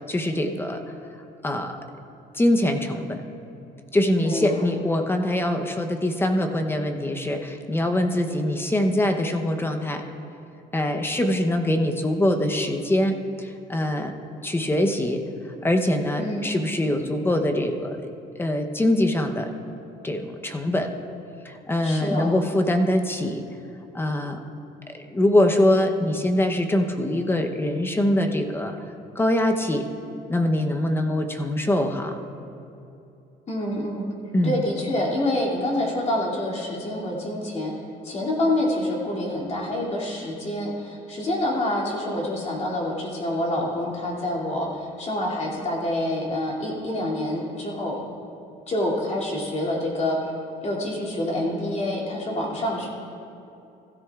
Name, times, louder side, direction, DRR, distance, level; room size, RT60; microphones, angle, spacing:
voice 1, 0.1-0.8 1.4-1.8 2.3-3.2 3.9-10.0 10.7-14.1 14.4-15.2 15.6-18.1 18.4-19.5 20.0-20.9 21.4-23.4 23.9-24.4 24.9-28.8 29.2-29.9 30.3-32.2 34.3-34.6, left 1 dB, 15° left, 5 dB, 0.8 m, -23 dB
voice 2, 4.2-4.7 16.2-16.5 21.8-22.4 33.5-34.0 34.4-37.7 38.0-48.0 48.7-50.3 50.6-52.9, left 1 dB, 40° left, -4 dB, 2.7 m, -27 dB
15.5 x 13.0 x 2.4 m, 2.8 s
cardioid pair, 110°, 17 cm